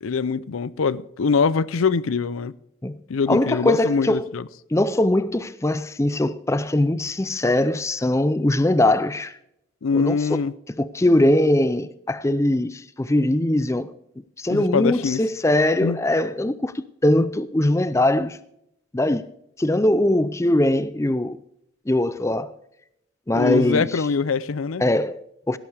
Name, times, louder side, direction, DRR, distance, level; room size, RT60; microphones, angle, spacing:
voice 1, 0.0-2.5 3.1-4.5 9.8-10.5 14.5-15.2 15.8-16.0 23.3-24.8, left 5 dB, 85° left, 0.5 m, -23 dB
voice 2, 3.3-4.3 4.7-9.4 9.9-10.4 10.8-13.9 14.4-18.4 18.9-19.3 19.6-21.4 21.9-22.5 23.3-23.9 24.8-25.6, left 1 dB, 15° left, 0.4 m, -21 dB
17.5 x 11.0 x 3.4 m
head